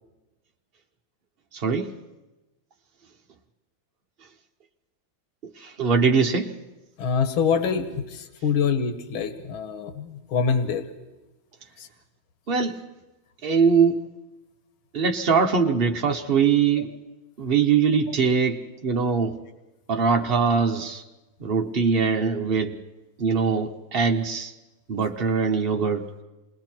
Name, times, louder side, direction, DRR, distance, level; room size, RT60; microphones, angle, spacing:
voice 1, 1.5-1.9 5.6-6.5 12.5-12.8 13.4-14.0 14.9-16.9 17.4-19.3 19.9-21.0 21.4-22.7 23.2-24.5 24.9-26.0, right 5 dB, 50° right, 2 dB, 0.7 m, -22 dB
voice 2, 7.0-10.9 11.8-11.9, left 6 dB, 80° left, 8 dB, 2.1 m, -25 dB
28.0 x 20.5 x 4.5 m, 1.1 s
omnidirectional pair, 2.3 m